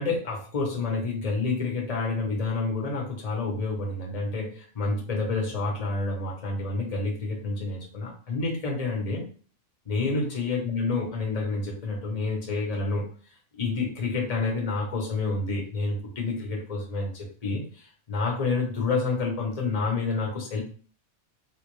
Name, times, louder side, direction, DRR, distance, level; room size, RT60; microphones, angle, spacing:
voice 1, 0.0-9.2 9.8-13.1 13.6-20.6, left 3 dB, 35° left, -1 dB, 0.9 m, -29 dB
3.6 x 2.4 x 3.1 m, 0.41 s
omnidirectional pair, 1.3 m